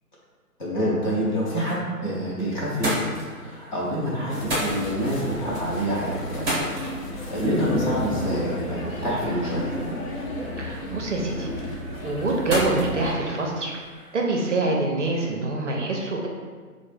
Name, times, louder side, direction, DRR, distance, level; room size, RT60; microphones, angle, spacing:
voice 1, 0.6-6.7 7.0-9.8, equal, 30° left, -7 dB, 0.7 m, -27 dB
sound 1, 2.1-2.3 2.6-14.2, equal, 15° right, 0.8 m, -35 dB
sound 2, 4.3-13.2, left 1 dB, 60° left, 0.7 m, -32 dB
voice 2, 10.6-11.5 12.0-13.7 14.1-16.3, right 2 dB, 50° right, 0 dB, 0.5 m, -25 dB
3.5 x 2.0 x 3.2 m, 1.5 s
figure-of-eight pair, 145°, 46 cm